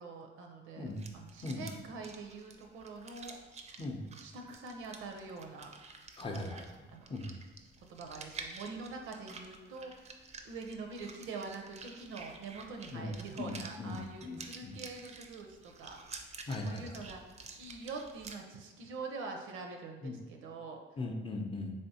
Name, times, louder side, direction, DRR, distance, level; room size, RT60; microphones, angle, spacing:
voice 1, 0.0-3.3 4.0-5.8 6.2-6.4 6.9-7.1 7.9-16.3 16.6-17.2 17.6-20.8, right 4 dB, 90° right, 3 dB, 0.6 m, -45 dB
sound 1, 0.8-18.4, right 4 dB, 35° right, 0.4 m, -51 dB
voice 2, 6.2-6.7 7.1-7.3 12.9-13.1 13.4-14.7 16.5-17.1 20.0-20.2 21.0-21.7, left 2 dB, 25° left, 2 dB, 0.5 m, -39 dB
3.4 x 3.3 x 2.7 m, 1.2 s
cardioid pair, 90°, 20 cm